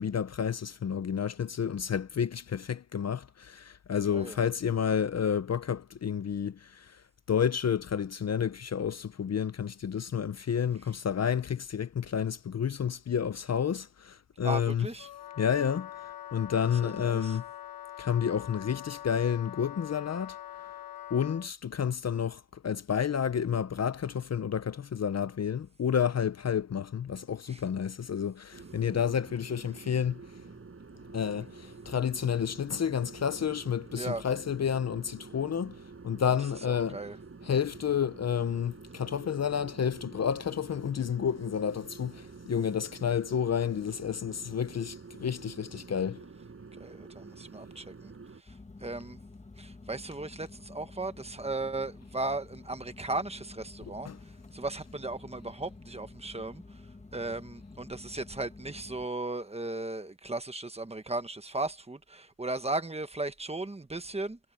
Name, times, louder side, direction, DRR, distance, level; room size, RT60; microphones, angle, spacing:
voice 1, 0.0-7.0 7.3-14.9 15.4-15.9 16.3-17.4 18.0-20.4 21.1-30.2 31.1-35.8 36.0-37.0 37.4-46.2 54.0-54.2, left 8 dB, 50° left, 0.6 m, -30 dB
voice 2, 14.4-15.1 16.8-17.4 27.5-27.6 34.0-34.2 36.7-37.2 46.8-48.1 48.5-48.6 48.8-49.2 49.6-54.1 54.5-56.6 57.1-64.4, right 2 dB, 20° right, 1.2 m, -36 dB
Wind instrument woodwind instrument, 15.0-21.5, left 11 dB, 90° left, 1.0 m, -44 dB
sound 1, 28.5-48.4, right 4 dB, 40° right, 7.5 m, -48 dB
sound 2, 48.5-59.1, left 3 dB, 20° left, 1.2 m, -50 dB
wide cardioid pair, 160°, 33 cm